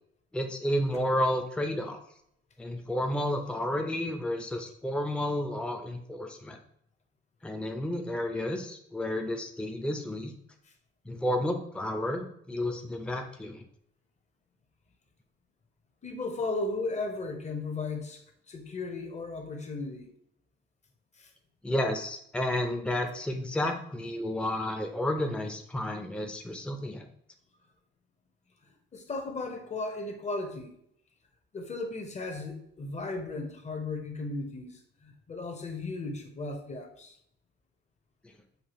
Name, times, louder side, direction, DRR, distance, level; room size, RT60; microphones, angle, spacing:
voice 1, 0.3-2.0 2.6-6.6 7.4-10.3 11.1-13.6 21.6-27.1, left 1 dB, 5° left, 0.6 m, -31 dB
voice 2, 16.0-18.2 18.5-20.1 21.2-21.3 28.9-30.7 31.5-37.1, left 3 dB, 35° left, 0.9 m, -35 dB
6.6 x 2.4 x 2.9 m
cardioid pair, 90°, 20 cm